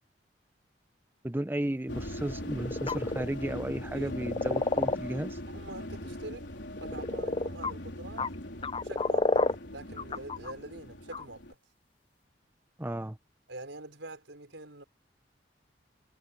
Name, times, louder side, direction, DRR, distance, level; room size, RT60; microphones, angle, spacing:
voice 1, 1.2-5.4 12.8-13.2, right 1 dB, 10° right, 0.7 m, -34 dB
sound 1, 1.9-11.5, left 1 dB, 75° left, 3.9 m, -40 dB
sound 2, 2.4-3.2 4.2-5.0 6.8-7.7 8.2-8.3 8.6-9.6 10.0-10.5 11.1-11.2, left 3 dB, 30° left, 0.5 m, -29 dB
voice 2, 5.5-6.5 6.8-8.3 8.8-9.4 9.7-11.4 13.5-14.8, right 2 dB, 90° right, 5.2 m, -45 dB
head